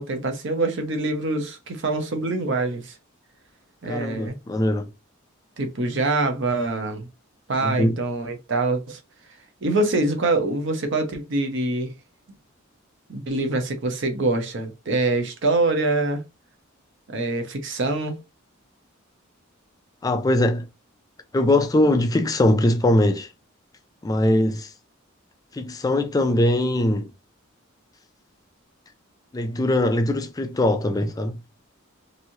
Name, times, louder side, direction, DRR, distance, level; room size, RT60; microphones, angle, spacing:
voice 1, 0.0-2.9 3.8-4.4 5.6-7.1 7.5-9.0 9.6-11.9 13.1-16.2 17.1-18.2, right 2 dB, 60° right, 0.8 m, -24 dB
voice 2, 3.9-4.9 7.6-8.0 20.0-20.7 21.3-23.3 24.0-24.7 25.5-27.1 29.3-31.4, left 1 dB, 20° left, 0.3 m, -21 dB
3.1 x 2.6 x 2.7 m
head